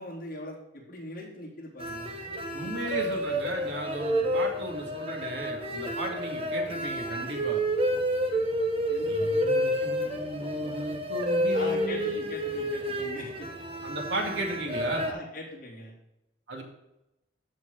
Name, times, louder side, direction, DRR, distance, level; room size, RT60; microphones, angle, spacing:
voice 1, 0.0-2.1 2.6-2.7 8.9-9.5 11.5-13.5 15.0-15.9, left 1 dB, 50° left, -5 dB, 3.6 m, -41 dB
sound 1, 1.8-15.1, equal, 30° right, 1.3 m, -30 dB
voice 2, 2.5-7.6 9.1-12.2 13.8-15.1 16.5-16.6, equal, 85° right, 1 dB, 2.4 m, -35 dB
14.0 x 4.8 x 4.0 m, 0.90 s
head